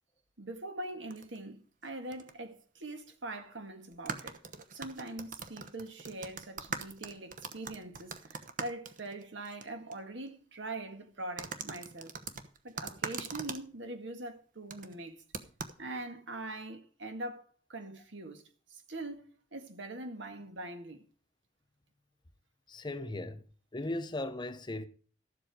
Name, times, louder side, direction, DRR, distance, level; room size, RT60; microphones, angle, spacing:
voice 1, 0.4-4.4 4.7-12.1 12.6-15.2 15.8-18.4 18.7-21.0, right 2 dB, 70° right, 1.8 m, -43 dB
sound 1, 1.1-1.4 2.1-2.3 2.6-2.7 3.9-9.6 9.9-10.0 11.4-13.6 14.7-15.0 15.3-15.8, right 5 dB, 45° right, 1.0 m, -41 dB
voice 2, 22.7-23.4 23.7-24.8, left 2 dB, 25° left, 0.9 m, -37 dB
13.5 x 7.7 x 4.8 m
head